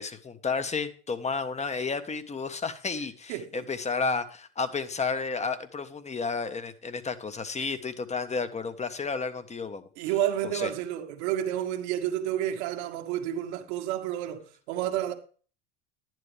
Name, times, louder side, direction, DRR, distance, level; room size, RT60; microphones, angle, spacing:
voice 1, 0.0-9.8 10.5-10.7, left 4 dB, 20° left, 1.4 m, -32 dB
voice 2, 3.3-3.6 10.0-15.1, right 11 dB, 75° right, 1.8 m, -30 dB
11.0 x 10.5 x 3.4 m
supercardioid pair, 95°, 34 cm